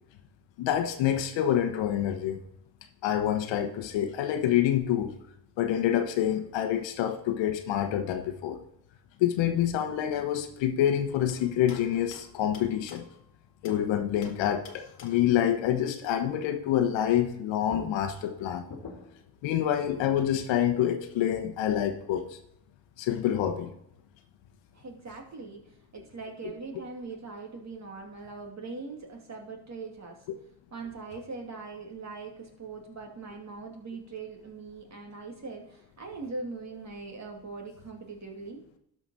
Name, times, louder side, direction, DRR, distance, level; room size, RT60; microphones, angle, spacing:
voice 1, 0.6-2.4 3.0-5.1 5.6-8.6 9.2-13.0 13.6-18.6 19.4-22.4 23.0-23.7, left 10 dB, 70° left, 7 dB, 1.2 m, -27 dB
sound 1, 11.3-13.9 14.2-15.4 17.3-17.4 17.7-19.3, left 4 dB, 50° left, 1.8 m, -46 dB
voice 2, 24.7-30.3 30.7-38.8, right 4 dB, 35° right, 0 dB, 2.7 m, -41 dB
12.5 x 5.3 x 4.0 m, 0.78 s
supercardioid pair, 70°, 47 cm